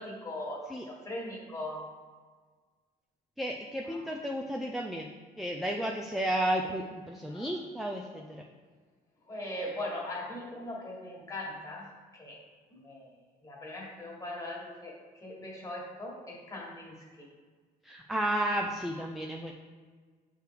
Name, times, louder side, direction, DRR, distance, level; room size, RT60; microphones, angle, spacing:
voice 1, 0.0-1.9 3.8-4.1 7.3-7.5 8.1-8.2 9.2-12.4 12.7-13.2 13.4-17.3, left 1 dB, 20° left, -3 dB, 1.6 m, -40 dB
voice 2, 3.4-5.1 5.4-8.4 17.8-19.5, right 1 dB, ahead, 1 dB, 0.4 m, -32 dB
6.6 x 3.4 x 4.6 m, 1.5 s
cardioid pair, 110°, 17 cm